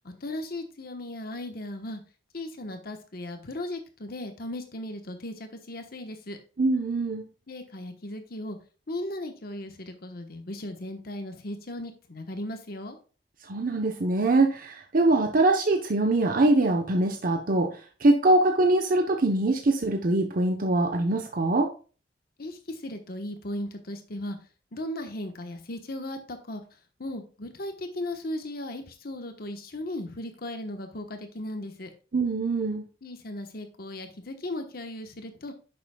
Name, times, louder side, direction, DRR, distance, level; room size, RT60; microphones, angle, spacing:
voice 1, 0.0-2.0 2.3-6.4 7.5-8.6 8.9-13.0 22.4-24.4 24.7-26.6 27.0-31.9 33.0-35.5, left 1 dB, 60° left, 6 dB, 1.2 m, -37 dB
voice 2, 6.6-7.2 13.5-21.7 32.1-32.8, right 2 dB, 55° right, 3 dB, 0.9 m, -23 dB
10.5 x 7.0 x 2.3 m, 0.36 s
head